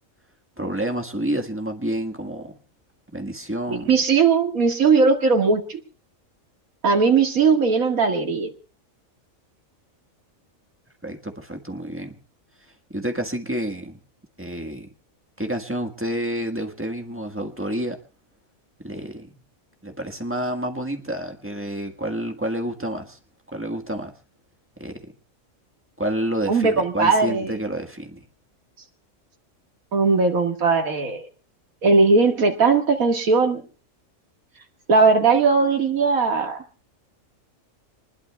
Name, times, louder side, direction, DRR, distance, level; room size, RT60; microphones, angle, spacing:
voice 1, 0.6-2.6 3.1-3.9 11.0-12.2 12.9-14.0 14.4-14.9 15.4-18.0 18.8-19.4 19.8-23.2 23.5-24.1 24.8-25.1 26.0-28.2, right 1 dB, 10° right, 4 dB, 1.4 m, -29 dB
voice 2, 3.7-5.8 6.8-8.5 26.5-27.5 29.9-31.3 31.8-33.6 34.9-36.6, right 4 dB, 85° right, 4 dB, 2.2 m, -19 dB
26.5 x 20.5 x 2.3 m, 0.36 s
omnidirectional pair, 1.4 m